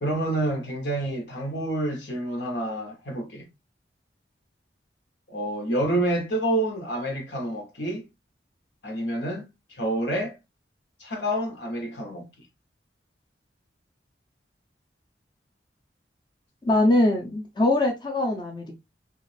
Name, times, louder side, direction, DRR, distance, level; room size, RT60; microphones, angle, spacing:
voice 1, 0.0-3.5 5.3-8.0 8.8-9.5 9.8-10.4 11.0-12.3, right 1 dB, 75° left, 1.1 m, -28 dB
voice 2, 16.6-18.8, left 1 dB, 25° left, 0.6 m, -22 dB
3.1 x 2.5 x 3.2 m
head